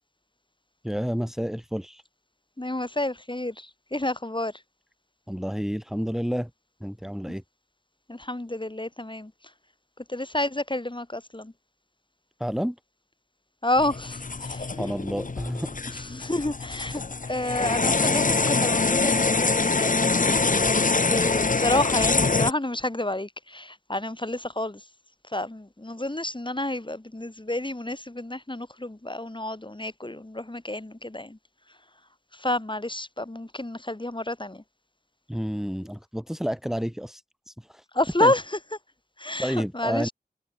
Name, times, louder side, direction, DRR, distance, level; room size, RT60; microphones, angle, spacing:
voice 1, 0.8-2.0 5.3-6.5 6.8-7.4 12.4-12.8 14.8-15.7 35.3-37.2 37.5-37.8 38.2-38.3 39.4-40.1, equal, ahead, 2.3 m, -30 dB
voice 2, 2.6-4.5 8.1-9.3 10.1-11.5 13.6-14.7 15.9-20.8 21.1-24.8 25.3-31.4 32.3-34.6 37.9-38.6 39.2-40.1, left 1 dB, 30° left, 7.0 m, -29 dB
sound 1, 13.8-22.5, left 3 dB, 55° left, 1.2 m, -24 dB
wide cardioid pair, 50°, 17 cm